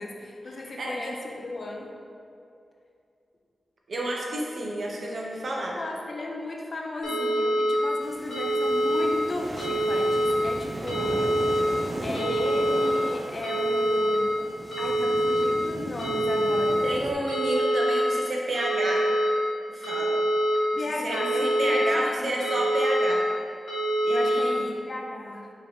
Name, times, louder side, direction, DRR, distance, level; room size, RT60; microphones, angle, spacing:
voice 1, 0.0-1.9 5.6-11.3 12.0-14.5 14.8-16.8 20.8-22.6 24.1-25.5, left 2 dB, 45° left, 1 dB, 0.5 m, -35 dB
voice 2, 0.8-1.2 3.9-5.7 16.8-19.1 19.7-20.2 20.7-23.2 24.0-24.8, right 1 dB, 60° right, -2 dB, 0.7 m, -30 dB
sound 1, 7.0-7.8 8.3-9.0 9.6-10.3 10.9-11.6 12.1-12.9 13.4-14.2 14.7-15.4 16.0-16.7 17.3-18.0 18.5-19.3 19.8-20.6 21.1-21.8 22.4-23.1 23.7-24.4, right 1 dB, 85° left, 1.3 m, -25 dB
sound 2, 8.0-17.1, right 1 dB, 30° right, 0.3 m, -37 dB
4.8 x 2.9 x 3.4 m, 2.5 s
wide cardioid pair, 120°, 0 cm